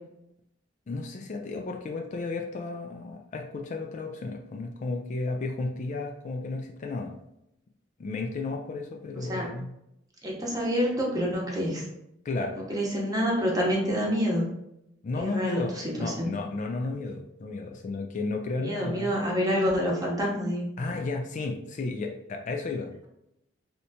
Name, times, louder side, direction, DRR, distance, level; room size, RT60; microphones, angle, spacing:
voice 1, 0.9-7.1 8.0-9.7 12.2-12.6 15.0-15.7 16.0-19.1 20.8-23.1, left 3 dB, 40° left, 2 dB, 0.3 m, -33 dB
voice 2, 10.2-11.8 12.6-14.4 15.2-16.3 18.6-20.7, equal, 20° right, -3 dB, 0.9 m, -27 dB
3.3 x 2.8 x 2.7 m, 0.82 s
head